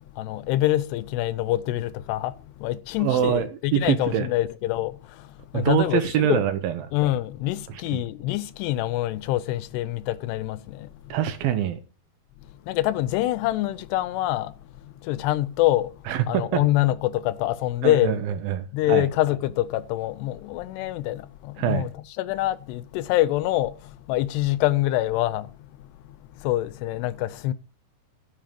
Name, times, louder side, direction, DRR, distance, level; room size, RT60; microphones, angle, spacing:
voice 1, 0.2-2.3 2.6-5.3 5.5-6.4 6.9-11.1 12.7-14.5 15.0-15.9 16.3-18.1 18.7-21.9 22.2-25.5 26.4-27.5, left 15 dB, 90° left, 2.8 m, -25 dB
voice 2, 3.0-4.3 5.5-6.9 7.7-8.0 11.1-11.8 16.1-16.6 17.8-19.1 21.6-21.9, right 10 dB, 75° right, 2.5 m, -25 dB
12.5 x 7.3 x 5.2 m
omnidirectional pair, 4.7 m